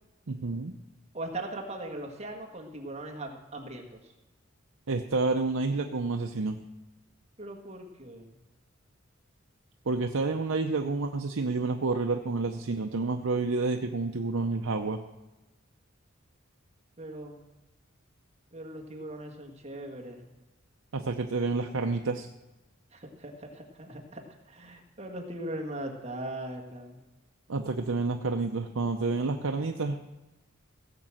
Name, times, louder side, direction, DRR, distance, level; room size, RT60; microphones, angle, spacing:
voice 1, 0.3-0.8 4.9-6.6 9.9-15.0 20.9-22.3 27.5-30.0, right 3 dB, 80° right, 4 dB, 0.7 m, -29 dB
voice 2, 1.1-3.9 7.4-8.4 17.0-17.4 18.5-20.2 22.9-24.2 24.5-27.0, right 1 dB, 30° right, 1 dB, 1.7 m, -39 dB
16.5 x 6.1 x 7.7 m, 1.1 s
head